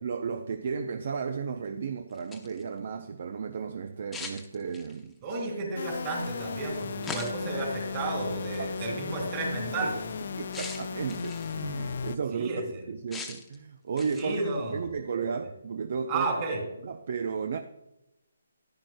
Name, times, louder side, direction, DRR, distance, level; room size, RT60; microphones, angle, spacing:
voice 1, 0.0-5.2 8.6-9.2 10.3-12.5 12.9-14.4 14.7-16.3 16.8-17.6, right 6 dB, 50° right, 0.5 m, -34 dB
sound 1, 2.1-2.6 4.1-5.1 7.0-7.6 8.5-8.7 10.5-11.6 13.1-13.6 14.0-14.4, left 4 dB, 5° left, 0.8 m, -40 dB
voice 2, 5.2-9.9 12.3-12.8 14.2-15.3 16.1-16.6, right 3 dB, 30° right, 3.0 m, -32 dB
sound 2, 5.8-12.2, left 6 dB, 55° left, 0.4 m, -36 dB
10.5 x 10.5 x 2.2 m
hypercardioid pair, 160°, 0 cm